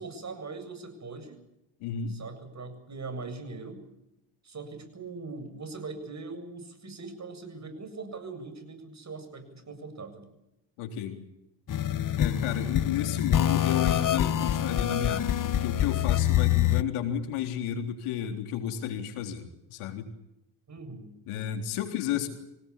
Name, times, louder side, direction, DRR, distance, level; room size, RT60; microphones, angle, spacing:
voice 1, 0.0-1.4 2.1-3.8 4.4-10.3 20.7-21.1, right 3 dB, 35° right, 7 dB, 7.9 m, -41 dB
voice 2, 1.8-2.2 10.8-11.2 12.2-20.1 21.3-22.3, left 9 dB, 85° left, 6 dB, 3.8 m, -32 dB
sound 1, 11.7-16.8, left 11 dB, 40° left, 1.0 m, -26 dB
25.5 x 19.0 x 8.5 m, 0.86 s
cardioid pair, 90°, 49 cm